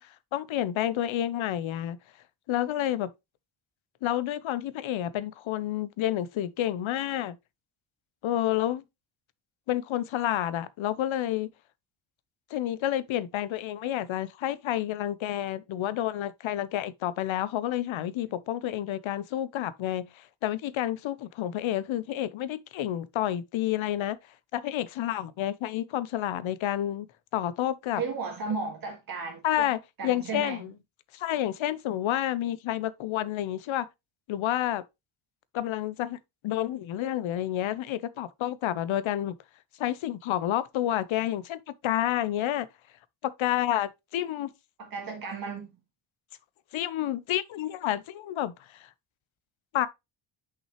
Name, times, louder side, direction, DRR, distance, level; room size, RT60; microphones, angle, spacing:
voice 1, 0.0-2.0 2.5-3.1 4.0-7.4 8.2-8.8 9.7-11.5 12.5-24.2 24.5-28.0 29.4-30.7 31.1-33.9 34.3-34.8 35.5-36.2 36.4-39.3 39.8-42.7 43.2-44.5 46.7-48.9 49.7-49.9, left 12 dB, 70° left, 0.8 m, -29 dB
voice 2, 28.0-29.7 30.0-30.7 44.8-45.8, right 4 dB, 45° right, 1.8 m, -34 dB
6.0 x 5.7 x 3.1 m
wide cardioid pair, 160°, 49 cm